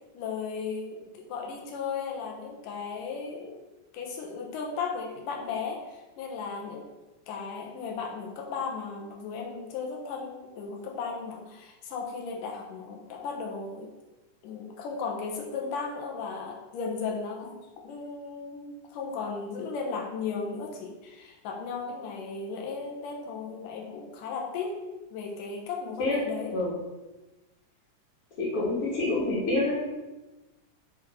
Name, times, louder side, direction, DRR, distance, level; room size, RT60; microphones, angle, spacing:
voice 1, 0.1-3.6 3.9-6.8 7.3-13.9 14.4-17.6 17.8-24.8 25.1-26.5, left 5 dB, 80° left, 0 dB, 2.7 m, -35 dB
voice 2, 28.4-29.8, left 2 dB, 50° left, -8 dB, 2.7 m, -27 dB
6.2 x 5.2 x 5.7 m, 1.1 s
omnidirectional pair, 3.7 m